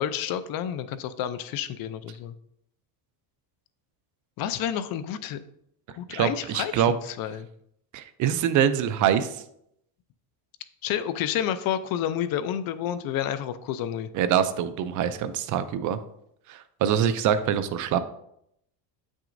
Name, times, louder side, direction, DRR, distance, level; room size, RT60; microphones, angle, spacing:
voice 1, 0.0-2.3 4.4-5.5 6.0-7.5 10.8-14.1, left 10 dB, 50° left, 12 dB, 0.5 m, -30 dB
voice 2, 6.1-6.9 7.9-9.4 14.1-16.0 16.5-18.0, right 9 dB, 45° right, 12 dB, 0.4 m, -24 dB
7.8 x 6.1 x 2.6 m, 0.74 s
cardioid pair, 155°, 47 cm